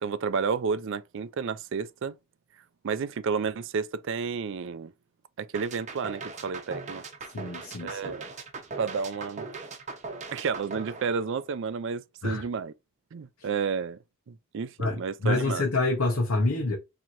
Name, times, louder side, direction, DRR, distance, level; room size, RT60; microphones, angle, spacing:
voice 1, 0.0-2.2 2.8-4.9 5.4-7.0 7.8-8.3 8.8-9.5 10.3-12.7 13.1-14.0 14.3-15.7, right 5 dB, 60° right, 0.4 m, -31 dB
sound 1, 5.5-11.7, right 4 dB, 35° right, 0.8 m, -40 dB
voice 2, 7.3-8.1 12.2-12.4 13.4-13.5 14.8-16.8, left 2 dB, 80° left, 1.0 m, -27 dB
4.5 x 2.9 x 2.5 m
head